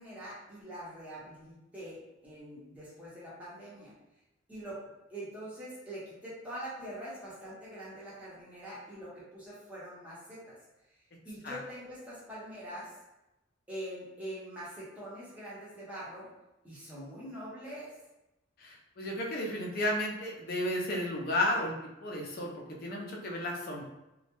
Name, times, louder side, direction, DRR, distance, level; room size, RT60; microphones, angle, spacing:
voice 1, 0.0-3.9 4.5-4.8 5.1-10.6 11.2-12.9 13.7-16.3 16.6-17.9, right 1 dB, 5° right, -9 dB, 0.7 m, -44 dB
voice 2, 18.6-22.5 22.8-23.8, left 1 dB, 45° left, -1 dB, 0.4 m, -33 dB
2.2 x 2.0 x 2.8 m, 0.95 s
head